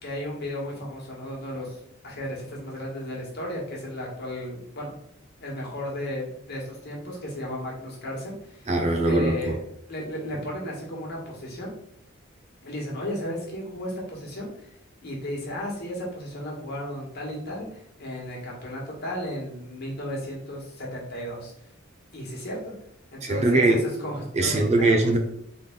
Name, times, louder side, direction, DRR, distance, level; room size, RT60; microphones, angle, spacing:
voice 1, 0.0-4.9 5.4-8.7 9.0-9.6 9.9-11.7 12.6-14.7 15.0-21.5 22.1-22.7 23.1-23.6 24.0-25.1, left 1 dB, 50° left, -3 dB, 1.6 m, -34 dB
voice 2, 8.7-9.6 23.2-23.8 24.3-25.2, right 2 dB, 35° right, 3 dB, 0.6 m, -21 dB
4.1 x 3.4 x 3.7 m, 0.74 s
head